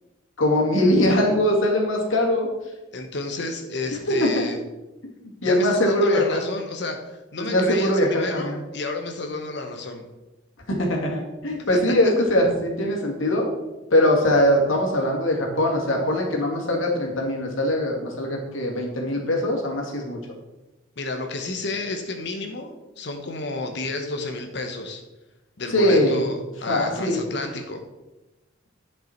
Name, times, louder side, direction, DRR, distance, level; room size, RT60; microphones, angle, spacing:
voice 1, 0.4-2.5 4.1-4.5 5.4-6.4 7.4-8.6 10.7-13.5 13.9-20.2 25.7-26.2 26.7-27.3, left 1 dB, 80° left, 0 dB, 2.2 m, -21 dB
voice 2, 2.9-4.6 5.4-10.1 21.0-25.0 25.6-27.8, left 3 dB, 60° left, 5 dB, 1.0 m, -31 dB
11.0 x 5.5 x 4.4 m, 1.0 s
head